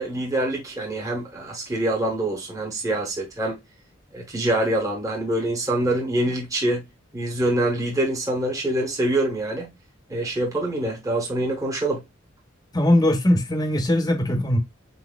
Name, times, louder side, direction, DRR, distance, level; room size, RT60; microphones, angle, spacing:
voice 1, 0.0-3.6 4.1-6.8 7.1-9.7 10.1-12.0, right 1 dB, 15° right, 1.1 m, -25 dB
voice 2, 12.7-14.6, left 1 dB, 20° left, 0.8 m, -20 dB
4.2 x 3.9 x 2.4 m
head